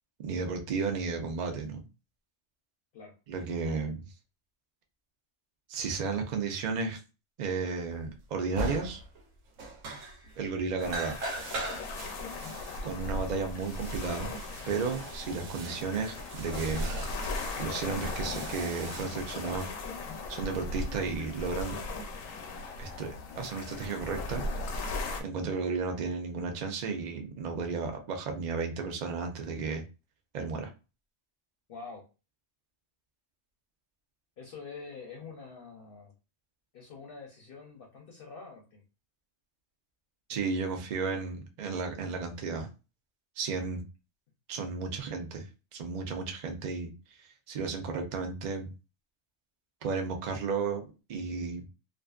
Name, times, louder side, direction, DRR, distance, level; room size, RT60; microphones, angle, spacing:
voice 1, 0.2-1.8 3.3-4.0 5.7-7.0 7.4-9.0 10.4-11.2 12.8-14.3 14.7-16.9 17.6-19.7 20.3-21.8 22.8-24.4 25.2-29.8 30.3-30.7 40.3-42.7 43.4-43.8 44.5-46.9 47.5-48.7 49.8-50.8 51.1-51.7, right 4 dB, 55° right, 4 dB, 0.5 m, -33 dB
sound 1, 8.2-8.3 8.6-9.3 9.6-10.5 10.8-20.3, right 2 dB, 90° right, 1.0 m, -41 dB
sound 2, 10.8-25.2, left 2 dB, 85° left, 1.0 m, -37 dB
voice 2, 31.7-32.1 34.4-36.1 36.7-38.8, left 4 dB, 55° left, 0 dB, 0.7 m, -46 dB
2.4 x 2.4 x 2.3 m, 0.30 s
omnidirectional pair, 1.3 m